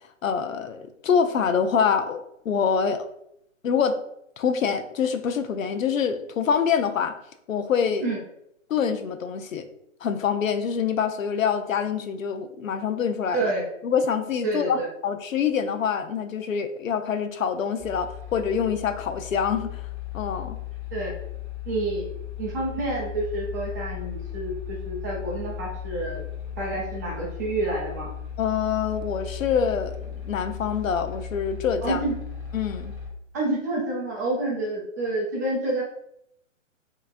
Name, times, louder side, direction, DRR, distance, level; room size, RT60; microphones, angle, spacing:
voice 1, 0.2-3.1 3.6-4.0 4.4-7.1 7.5-8.0 8.7-9.7 10.0-13.5 13.8-19.8 20.1-20.6 28.4-32.0 32.5-32.9, left 7 dB, 90° left, 9 dB, 0.7 m, -25 dB
voice 2, 14.4-14.9 20.9-21.1 21.7-22.1 22.4-26.2 26.6-28.1 31.8-32.1 33.3-35.8, right 2 dB, 15° right, -4 dB, 0.6 m, -28 dB
sound 1, 17.8-33.1, left 9 dB, 25° left, 1.1 m, -36 dB
5.7 x 3.0 x 2.5 m, 0.76 s
hypercardioid pair, 165°, 39 cm